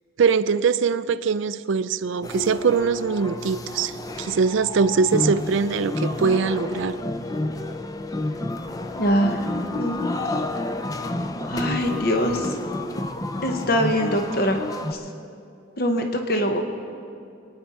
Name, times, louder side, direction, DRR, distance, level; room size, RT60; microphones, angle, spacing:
voice 1, 0.2-7.0 11.4-11.5, right 5 dB, 75° right, 0.4 m, -22 dB
sound 1, 2.2-14.9, left 2 dB, 20° left, 0.4 m, -30 dB
sound 2, 8.7-12.3, left 2 dB, 70° left, 1.7 m, -45 dB
voice 2, 9.0-10.1 11.5-12.6 13.4-14.6 14.9-15.0 15.8-16.6, equal, 50° left, 1.0 m, -23 dB
24.5 x 9.8 x 4.2 m
head